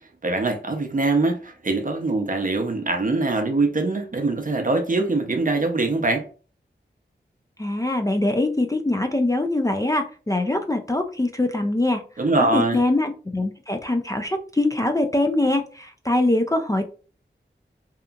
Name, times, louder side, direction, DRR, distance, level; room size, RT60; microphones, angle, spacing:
voice 1, 0.2-6.3 12.2-12.8, right 2 dB, 45° right, 0.6 m, -23 dB
voice 2, 7.6-12.0 12.4-16.9, left 2 dB, 15° left, 0.4 m, -23 dB
2.8 x 2.4 x 2.2 m
wide cardioid pair, 45°, 19 cm